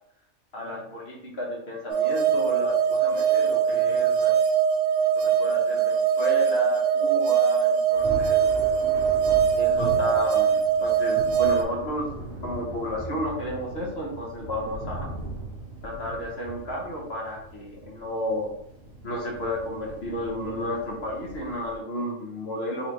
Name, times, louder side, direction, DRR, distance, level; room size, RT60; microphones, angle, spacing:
voice 1, 0.5-4.4 5.2-8.7 9.6-12.1 12.4-15.1 15.8-18.5 19.0-22.9, left 1 dB, 50° left, -2 dB, 1.2 m, -32 dB
sound 1, 1.9-11.6, right 8 dB, 60° right, 0.7 m, -22 dB
Thunder, 7.9-21.7, right 1 dB, 45° right, 1.3 m, -39 dB
4.2 x 3.3 x 3.0 m, 0.76 s
omnidirectional pair, 1.5 m